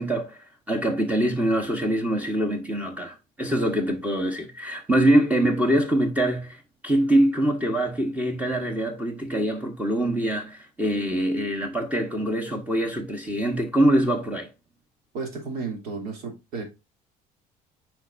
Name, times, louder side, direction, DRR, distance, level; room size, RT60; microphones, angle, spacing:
voice 1, 0.0-14.5, right 1 dB, 10° right, 1.1 m, -24 dB
voice 2, 15.1-16.6, right 4 dB, 75° right, 2.8 m, -33 dB
9.1 x 4.6 x 2.6 m
cardioid pair, 150°, 16 cm